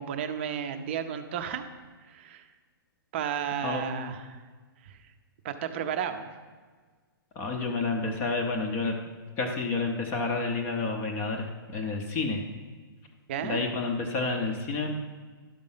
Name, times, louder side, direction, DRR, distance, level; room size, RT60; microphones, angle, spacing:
voice 1, 0.0-1.6 2.0-2.4 3.1-4.4 4.8-5.0 5.4-6.3 13.3-13.6, right 8 dB, 30° right, 9 dB, 0.6 m, -33 dB
voice 2, 3.6-4.1 7.4-9.0 9.4-11.5 11.7-12.4 13.4-15.0, left 3 dB, 15° left, 3 dB, 0.6 m, -29 dB
11.5 x 5.1 x 5.6 m, 1.5 s
hypercardioid pair, 170°, 12 cm